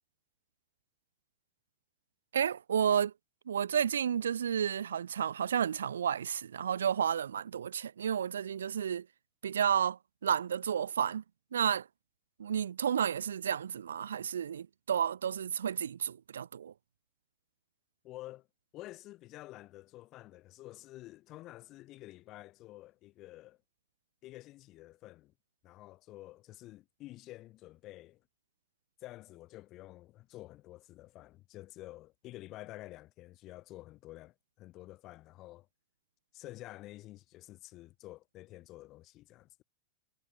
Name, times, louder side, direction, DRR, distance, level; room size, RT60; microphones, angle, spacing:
voice 1, 2.3-3.1 3.5-9.1 9.4-11.2 11.5-11.9 12.4-16.7, right 8 dB, 65° right, 0.4 m, -31 dB
voice 2, 18.0-18.5 18.7-23.6 24.2-25.3 25.6-28.2 29.0-35.7 36.3-39.6, left 17 dB, 35° left, 2.9 m, -50 dB
figure-of-eight pair, 90°, 0 cm